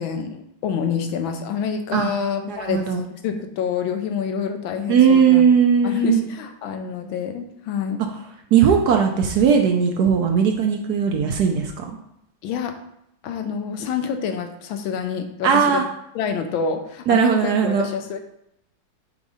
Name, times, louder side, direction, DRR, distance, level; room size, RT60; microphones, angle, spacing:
voice 1, 0.0-5.4 5.8-8.0 12.4-12.8 13.2-15.8 16.1-18.2, left 6 dB, 75° left, 6 dB, 1.5 m, -27 dB
voice 2, 2.5-3.0 4.9-6.3 8.5-12.0 15.4-15.8 17.1-17.9, right 7 dB, 70° right, 3 dB, 0.9 m, -18 dB
5.3 x 3.8 x 4.8 m, 0.79 s
omnidirectional pair, 2.2 m